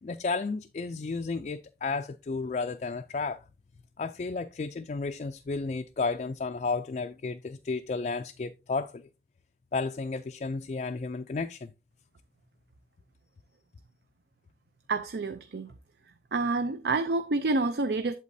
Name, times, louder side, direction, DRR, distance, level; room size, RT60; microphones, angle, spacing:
voice 1, 0.0-3.4 4.0-9.1 9.7-11.7, left 4 dB, 40° left, 0.3 m, -32 dB
voice 2, 14.9-15.7 16.3-18.1, right 3 dB, 70° right, 0.5 m, -28 dB
8.3 x 7.2 x 2.7 m
head